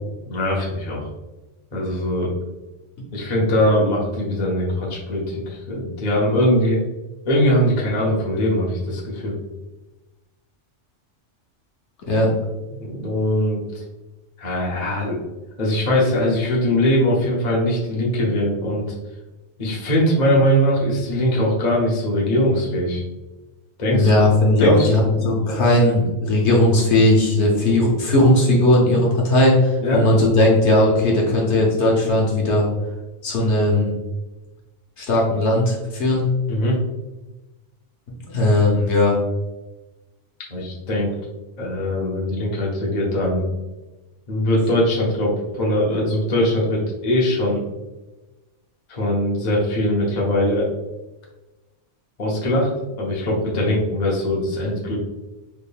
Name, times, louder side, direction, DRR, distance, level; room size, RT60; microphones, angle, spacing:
voice 1, 0.3-1.1 1.7-2.3 3.1-6.8 7.2-9.4 12.7-13.8 14.4-15.2 15.6-18.9 19.6-23.0 23.8-24.1 24.6-24.9 25.4-25.6 29.8-30.1 36.5-36.8 40.5-41.1 41.6-43.5 44.3-47.6 48.9-50.7 52.2-52.7 53.0-55.0, equal, 40° left, -4 dB, 0.9 m, -21 dB
voice 2, 23.9-32.7 33.2-33.9 35.0-36.3 38.2-39.2, left 1 dB, 70° left, -2 dB, 1.1 m, -17 dB
3.5 x 3.5 x 2.2 m, 1.1 s
omnidirectional pair, 1.3 m